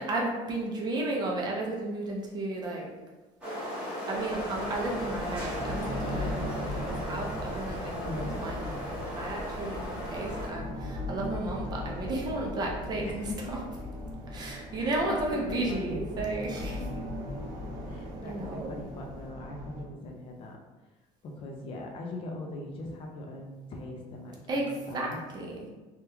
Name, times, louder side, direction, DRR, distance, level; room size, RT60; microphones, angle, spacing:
voice 1, 0.0-2.9 4.1-13.6 14.3-16.8 18.2-18.7 24.5-25.7, right 2 dB, 30° right, -1 dB, 0.5 m, -33 dB
sound 1, 3.4-10.5, equal, 5° right, 0.8 m, -37 dB
sound 2, 4.1-19.8, left 1 dB, 60° right, 0.8 m, -39 dB
Bass guitar, 6.0-9.5, right 1 dB, 55° left, 0.8 m, -43 dB
voice 2, 8.0-8.4 13.0-13.5 14.8-16.1 16.8-17.1 17.9-20.6 21.2-25.2, left 2 dB, 40° left, 1 dB, 0.4 m, -41 dB
2.8 x 2.2 x 3.4 m, 1.2 s
cardioid pair, 170°, 15 cm